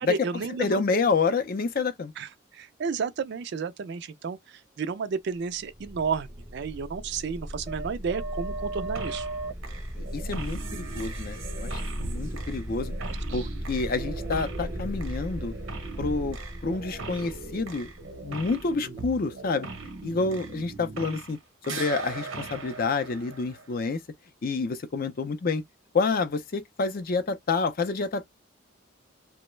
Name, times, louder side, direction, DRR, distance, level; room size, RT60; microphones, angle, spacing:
voice 1, 0.0-0.8 2.2-9.3 13.0-13.4, right 5 dB, 55° right, 0.3 m, -32 dB
voice 2, 0.6-2.1 9.9-12.9 13.3-15.5 16.0-17.9 18.2-19.7 20.0-21.4 21.7-24.0 24.4-25.6 25.9-28.3, left 4 dB, 45° left, 0.4 m, -28 dB
sound 1, 5.6-19.3, right 1 dB, 10° right, 0.6 m, -36 dB
sound 2, 9.0-9.4 9.6-21.4 21.6-23.8, right 4 dB, 75° right, 0.7 m, -40 dB
2.2 x 2.0 x 3.1 m
head